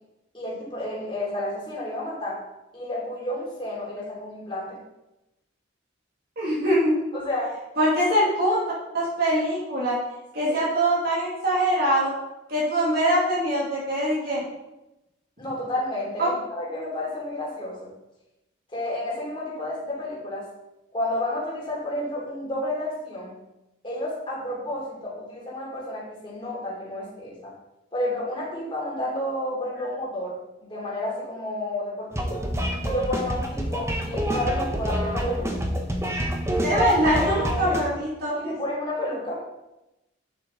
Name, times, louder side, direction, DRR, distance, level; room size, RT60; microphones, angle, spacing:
voice 1, 0.3-2.4 2.7-4.8 7.1-7.5 10.4-10.6 15.4-17.9 18.7-20.5 20.9-23.4 23.8-27.5 27.9-30.4 30.6-32.4 32.8-35.6 37.6-37.8 38.3-39.4, left 1 dB, 25° left, -5 dB, 3.0 m, -31 dB
voice 2, 6.4-6.9 7.8-8.6 8.9-10.0 10.3-12.1 12.5-14.4 16.2-16.3 36.6-38.5, right 1 dB, 50° right, -6 dB, 2.5 m, -23 dB
sound 1, 32.1-37.8, equal, 15° right, 1.0 m, -27 dB
9.2 x 7.6 x 3.9 m, 0.94 s
head